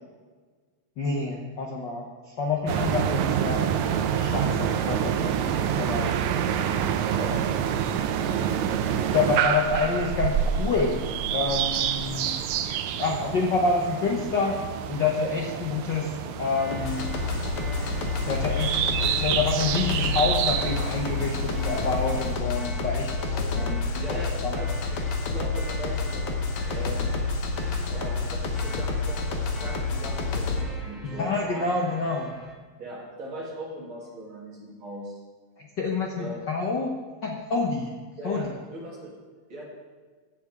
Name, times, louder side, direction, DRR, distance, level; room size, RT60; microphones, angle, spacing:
voice 1, 1.0-3.7 4.2-6.1 7.3-7.4 9.1-11.0 11.3-12.4 13.0-14.6 14.9-16.1 16.4-17.1 18.2-23.1 23.5-24.6 31.0-32.3 35.6-36.9 37.2-37.9 38.2-38.5, left 4 dB, 90° left, 0 dB, 0.9 m, -28 dB
sound 1, 2.7-22.3, right 8 dB, 80° right, 1.9 m, -28 dB
voice 2, 7.1-7.4 23.3-23.7 24.0-27.0 27.9-32.0 32.8-35.1 36.2-36.5 38.2-39.1 39.5-39.6, right 1 dB, 45° right, -4 dB, 3.0 m, -39 dB
sound 2, 16.6-32.5, left 1 dB, ahead, 1.6 m, -45 dB
sound 3, 16.7-30.6, left 3 dB, 60° left, 1.7 m, -29 dB
15.5 x 7.6 x 3.6 m, 1.4 s
omnidirectional pair, 3.3 m